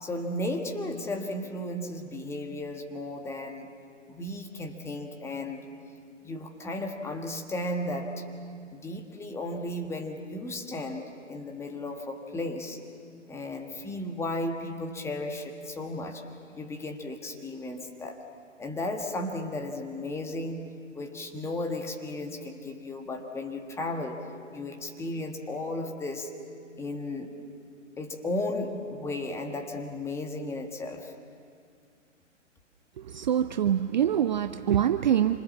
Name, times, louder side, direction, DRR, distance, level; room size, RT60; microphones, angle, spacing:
voice 1, 0.0-3.7 4.1-5.6 6.2-8.2 8.7-12.8 13.3-16.3 16.5-18.2 18.6-20.7 20.9-24.2 24.5-26.3 26.8-27.4 28.0-31.1, left 1 dB, 5° left, 3 dB, 1.5 m, -34 dB
voice 2, 33.0-35.4, right 10 dB, 40° right, 11 dB, 0.6 m, -25 dB
27.5 x 25.5 x 7.3 m, 2.3 s
figure-of-eight pair, 125°, 37 cm